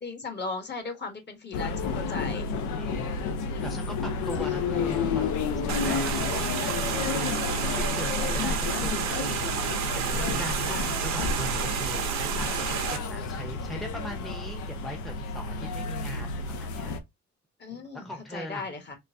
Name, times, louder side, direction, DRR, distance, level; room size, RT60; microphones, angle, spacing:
voice 1, 0.0-2.5 3.9-4.0 6.3-6.7 8.8-9.1 10.7-10.9 16.2-16.3 17.6-18.9, left 4 dB, 35° left, 1.1 m, -38 dB
sound 1, 1.5-17.0, left 4 dB, 90° left, 0.6 m, -31 dB
voice 2, 2.8-3.2 3.6-5.3 5.7-16.9 17.7-18.7, equal, ahead, 0.6 m, -40 dB
sound 2, 5.7-13.0, right 6 dB, 75° right, 0.7 m, -30 dB
3.7 x 2.1 x 2.6 m
cardioid pair, 90°, 29 cm